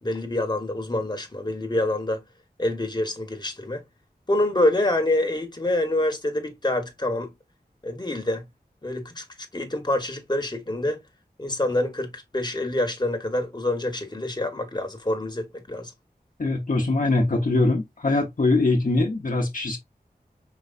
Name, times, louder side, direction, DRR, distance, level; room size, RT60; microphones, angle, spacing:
voice 1, 0.0-2.2 2.6-3.8 4.3-7.3 7.8-8.4 8.8-9.2 9.5-11.0 11.4-15.9, left 1 dB, 25° left, 1.2 m, -26 dB
voice 2, 16.4-19.8, left 2 dB, 55° left, 0.9 m, -22 dB
5.1 x 3.1 x 2.5 m
wide cardioid pair, 45°, 17 cm